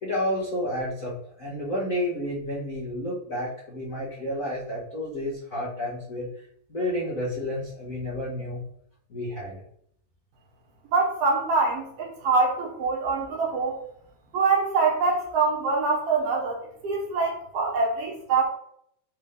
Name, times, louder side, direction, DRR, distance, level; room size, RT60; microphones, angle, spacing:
voice 1, 0.0-8.6 9.1-9.6, left 1 dB, 75° left, -8 dB, 0.7 m, -31 dB
voice 2, 10.9-13.8 14.3-18.4, right 4 dB, 60° right, -2 dB, 1.7 m, -24 dB
7.3 x 3.5 x 3.8 m, 0.68 s
omnidirectional pair, 4.5 m